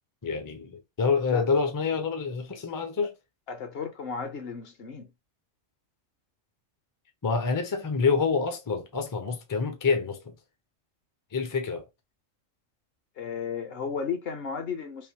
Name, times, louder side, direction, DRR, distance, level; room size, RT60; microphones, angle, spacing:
voice 1, 0.2-3.1 7.2-10.3 11.3-11.8, left 5 dB, 25° left, 0.4 m, -27 dB
voice 2, 3.5-5.1 13.2-15.1, left 6 dB, 55° left, 0.9 m, -34 dB
3.5 x 2.6 x 2.9 m
omnidirectional pair, 1.3 m